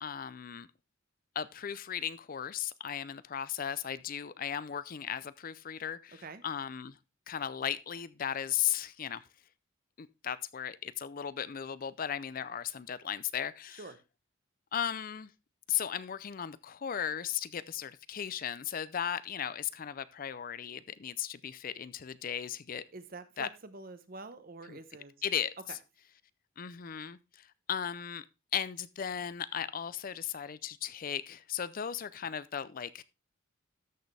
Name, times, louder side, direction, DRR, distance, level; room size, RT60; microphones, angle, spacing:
voice 1, 0.0-0.7 1.4-7.0 7.3-9.2 10.0-13.8 14.7-15.3 15.7-22.8 23.4-23.5 24.7-24.8 25.2-25.8 26.6-28.2 28.5-33.0, left 9 dB, 45° left, 0.4 m, -36 dB
voice 2, 6.1-6.4 13.8-14.0 22.9-25.1, right 3 dB, 45° right, 1.0 m, -46 dB
13.0 x 6.5 x 3.3 m
head